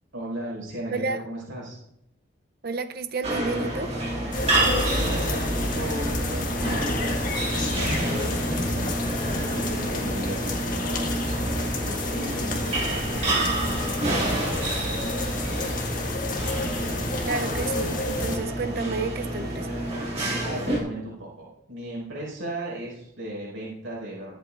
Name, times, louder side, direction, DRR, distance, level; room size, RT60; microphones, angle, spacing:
voice 1, 0.1-1.8 4.6-8.9 9.5-15.7 19.9-24.4, right 1 dB, 75° right, -5 dB, 5.0 m, -37 dB
voice 2, 0.9-1.2 2.6-3.9 17.2-19.8, right 3 dB, 50° right, 10 dB, 0.6 m, -31 dB
sound 1, 3.2-20.8, right 1 dB, 30° right, 2.3 m, -29 dB
sound 2, 4.3-18.4, left 2 dB, 40° left, 1.7 m, -30 dB
22.0 x 8.3 x 2.5 m, 0.78 s
head